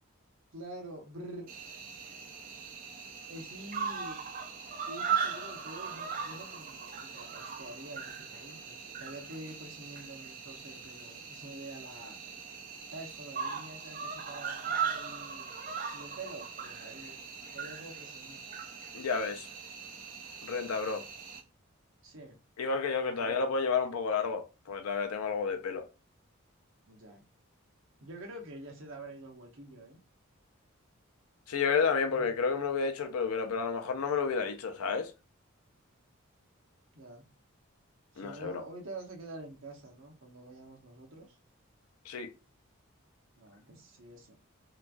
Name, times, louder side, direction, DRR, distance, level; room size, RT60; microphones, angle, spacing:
voice 1, 0.5-1.5 3.3-4.3 4.9-12.2 12.9-15.6 15.9-17.2 17.5-18.4 22.0-22.4 23.0-23.4 26.9-27.3 28.0-30.0 32.1-32.3 36.9-37.3 38.1-41.4 43.4-44.3, right 2 dB, 60° right, 0.9 m, -47 dB
Cricket, 1.5-21.4, right 6 dB, 40° right, 0.4 m, -39 dB
voice 2, 18.9-19.5 20.4-21.0 22.6-25.9 31.5-35.1 38.2-38.6 42.1-42.3, left 5 dB, 90° left, 0.5 m, -31 dB
3.0 x 2.3 x 2.4 m
head